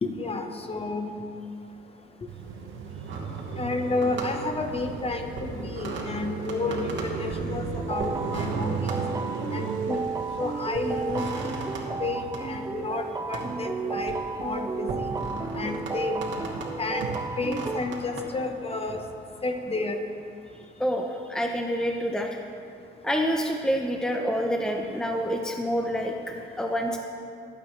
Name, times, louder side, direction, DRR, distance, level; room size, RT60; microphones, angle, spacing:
voice 1, 0.0-1.2 3.6-8.9 9.5-10.1 10.4-11.5 12.0-14.1 14.4-14.9 15.6-16.2 16.8-19.0 19.4-20.0, left 3 dB, 30° left, 5 dB, 1.1 m, -31 dB
Car passing by, 2.3-14.7 15.1-17.6, right 6 dB, 90° right, 0.8 m, -36 dB
sound 1, 3.0-3.7 4.0-5.0 5.3-6.1 6.4-7.5 8.0-9.0 9.6-10.2 10.7-11.8 12.3-12.4 13.3-13.5 13.8-14.3 14.9-15.9 16.2-16.7 17.0-17.2 17.5-18.3 18.8-18.9, right 3 dB, 65° right, 2.4 m, -37 dB
sound 2, 7.7-17.8, right 4 dB, 15° right, 0.4 m, -33 dB
voice 2, 20.8-22.4 23.0-27.0, equal, 5° left, 2 dB, 0.9 m, -27 dB
22.0 x 8.8 x 3.3 m, 2.5 s
cardioid pair, 90°, 20 cm